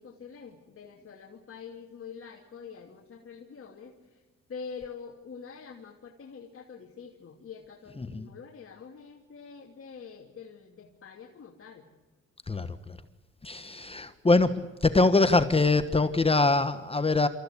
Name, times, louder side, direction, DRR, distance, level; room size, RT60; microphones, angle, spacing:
voice 1, 0.0-4.2 4.5-11.9, left 6 dB, 45° left, 0 dB, 2.8 m, -45 dB
voice 2, 8.0-8.3 12.5-13.0 13.4-17.3, left 3 dB, 20° left, 10 dB, 1.2 m, -24 dB
27.5 x 14.5 x 8.3 m, 1.3 s
cardioid pair, 90°, 30 cm